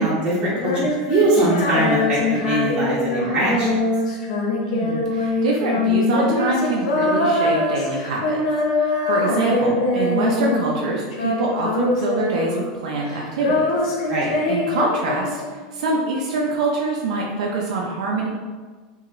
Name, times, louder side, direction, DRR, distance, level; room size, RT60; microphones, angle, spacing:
voice 1, 0.0-3.7 14.1-14.3, right 2 dB, 25° right, -8 dB, 1.0 m, -21 dB
Female singing, 0.5-10.8 11.1-12.8 13.1-15.7, left 2 dB, 90° left, 0.5 m, -23 dB
voice 2, 4.6-8.4 8.7-13.7 14.5-18.3, right 3 dB, 90° right, -2 dB, 0.5 m, -24 dB
3.0 x 2.7 x 2.4 m, 1.4 s
supercardioid pair, 145°, 4 cm